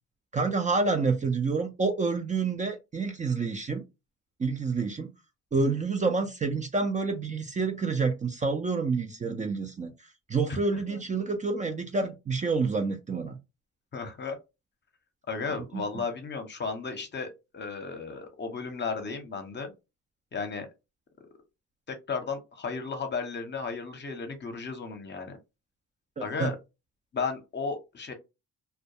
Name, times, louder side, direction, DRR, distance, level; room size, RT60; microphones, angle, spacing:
voice 1, 0.3-3.8 4.4-5.1 5.5-9.9 10.3-13.4 15.7-15.8 26.2-26.5, right 4 dB, 25° right, 0.4 m, -28 dB
voice 2, 13.9-14.4 15.3-19.7 20.3-20.7 21.9-25.4 26.2-26.6 27.1-28.1, left 4 dB, 35° left, 0.7 m, -34 dB
2.2 x 2.2 x 2.7 m
cardioid pair, 90°, 30 cm